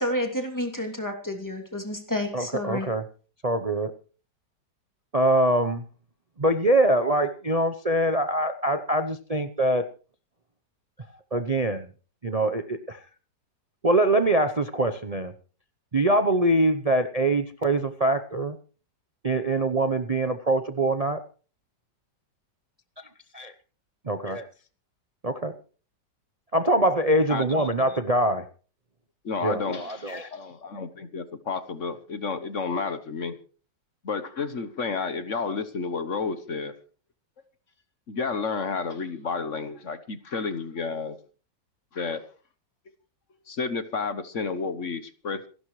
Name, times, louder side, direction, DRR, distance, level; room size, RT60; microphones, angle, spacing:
voice 1, 0.0-2.9, left 1 dB, 10° left, 3 dB, 2.7 m, -30 dB
voice 2, 2.3-3.0 3.4-3.9 5.1-5.8 6.4-9.8 11.3-11.9 12.2-13.0 13.8-15.3 15.9-18.6 19.2-21.2 23.3-23.5 24.0-24.4 25.2-25.5 26.5-28.5 29.4-30.3, right 1 dB, 40° right, 9 dB, 0.5 m, -23 dB
voice 3, 27.3-27.7 29.2-33.4 34.0-36.7 38.1-41.2 41.9-42.2 43.5-45.5, left 4 dB, 45° left, 12 dB, 1.3 m, -31 dB
27.5 x 12.0 x 3.2 m, 0.38 s
omnidirectional pair, 2.0 m